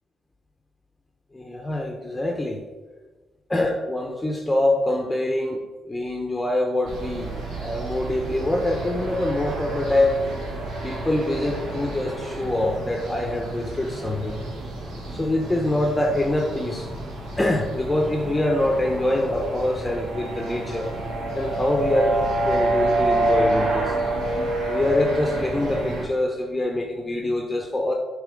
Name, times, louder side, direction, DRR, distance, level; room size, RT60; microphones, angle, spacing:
voice 1, 1.3-2.6 3.5-5.6 5.9-10.2 10.8-14.4 15.1-16.9 17.4-20.9 21.3-24.0 24.7-27.9, left 1 dB, 15° left, 2 dB, 0.7 m, -24 dB
sound 1, 6.8-26.0, right 2 dB, 80° right, 1.7 m, -28 dB
7.1 x 3.3 x 5.0 m, 1.3 s
cardioid pair, 95°, 0 cm